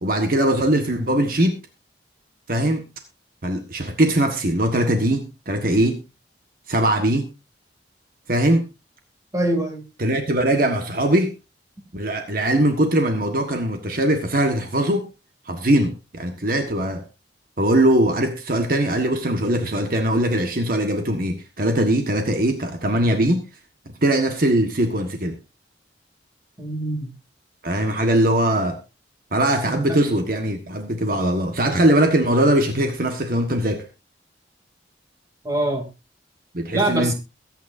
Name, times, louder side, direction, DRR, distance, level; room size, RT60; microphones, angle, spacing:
voice 1, 0.0-1.6 2.5-2.8 3.4-6.0 6.7-7.3 8.3-8.7 10.0-11.3 11.9-15.1 15.4-17.0 17.6-23.4 24.0-25.3 27.6-28.8 29.3-33.8 36.5-37.1, right 1 dB, 50° right, 5 dB, 1.5 m, -21 dB
voice 2, 9.3-9.8 26.6-27.1 29.6-30.0 35.4-35.9 36.7-37.1, right 1 dB, 20° right, 3 dB, 2.8 m, -23 dB
22.5 x 9.1 x 2.7 m, 0.27 s
head